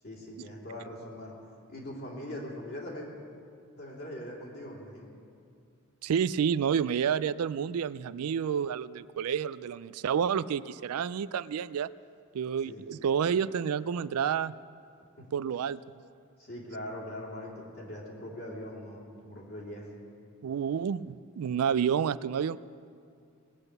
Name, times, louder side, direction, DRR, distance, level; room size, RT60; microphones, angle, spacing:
voice 1, 0.0-1.3 1.7-3.1 3.8-5.1 12.6-12.8 15.2-15.3 16.4-19.9, left 1 dB, 45° left, -3 dB, 3.1 m, -41 dB
voice 2, 6.0-11.9 12.3-14.5 15.3-15.8 20.4-22.6, right 7 dB, 80° right, 17 dB, 0.4 m, -29 dB
19.5 x 8.9 x 6.6 m, 2.3 s
head